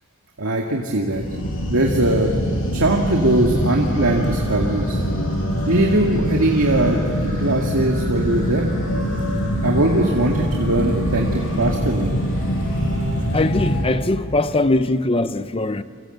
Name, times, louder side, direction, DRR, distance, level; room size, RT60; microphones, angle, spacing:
voice 1, 0.4-1.2 1.6-2.3 2.7-5.0 5.7-7.0 7.2-8.7 9.6-12.1, right 1 dB, 90° right, 2.2 m, -20 dB
sound 1, 1.1-13.8, equal, 80° left, 6.9 m, -23 dB
sound 2, 5.5-14.4, equal, 70° right, 5.4 m, -38 dB
voice 2, 13.3-15.8, left 2 dB, 25° left, 0.6 m, -21 dB
29.5 x 25.5 x 8.0 m
head